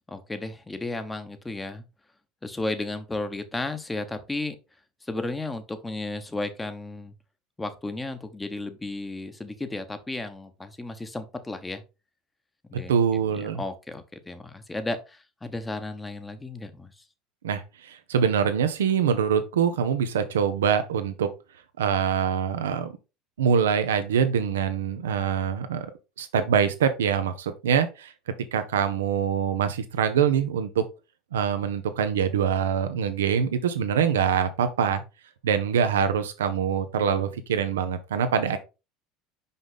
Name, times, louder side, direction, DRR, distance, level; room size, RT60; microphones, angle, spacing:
voice 1, 0.1-1.8 2.4-4.6 5.0-7.1 7.6-11.8 12.7-17.0, left 2 dB, 15° left, 1.2 m, -34 dB
voice 2, 12.9-13.6 17.4-21.3 21.8-22.9 23.4-25.9 26.2-28.1 28.5-30.8 31.3-35.0 35.4-38.6, right 7 dB, 90° right, 0.9 m, -24 dB
5.6 x 5.2 x 3.9 m
hypercardioid pair, 85°, 0 cm